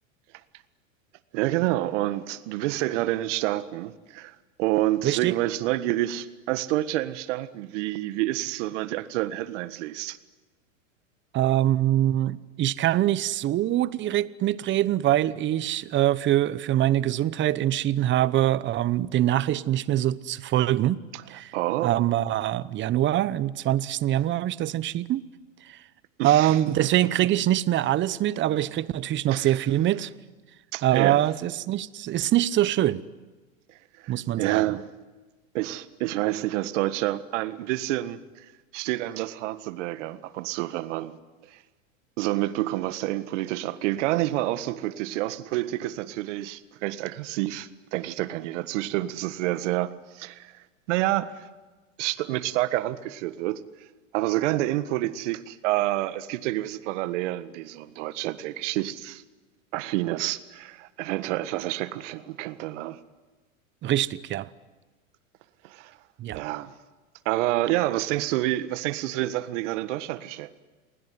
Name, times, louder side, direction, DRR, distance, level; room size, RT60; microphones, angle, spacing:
voice 1, 1.3-10.2 21.1-21.2 21.5-21.9 26.2-26.6 29.3-29.5 30.7-31.2 34.0-34.9 35.5-41.2 41.5-41.6 42.2-50.5 50.9-51.5 52.0-53.6 54.1-59.2 59.7-63.0 65.6-66.0 66.3-66.7 67.2-70.5, right 16 dB, 60° right, 1.6 m, -28 dB
voice 2, 5.0-5.4 11.3-21.0 21.3-21.5 21.8-25.2 25.6-25.8 26.2-30.1 30.8-33.0 34.1-34.6 63.8-64.5 66.2-66.4, right 13 dB, 30° right, 0.9 m, -24 dB
28.5 x 20.0 x 9.6 m
hypercardioid pair, 120°, 41 cm